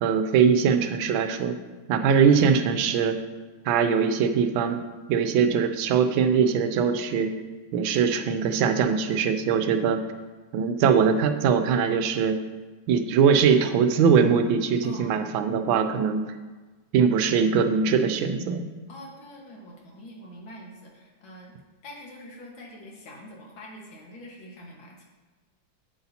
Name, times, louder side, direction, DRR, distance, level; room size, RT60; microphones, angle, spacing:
voice 1, 0.0-1.6 1.9-3.2 3.6-4.8 5.1-7.3 7.7-10.0 10.5-12.4 12.9-16.2 16.9-18.7, right 6 dB, 85° right, 8 dB, 1.4 m, -22 dB
voice 2, 14.8-15.4 18.9-21.5 21.8-25.0, equal, 80° left, -2 dB, 2.3 m, -44 dB
8.5 x 7.9 x 2.8 m, 1.3 s
omnidirectional pair, 2.1 m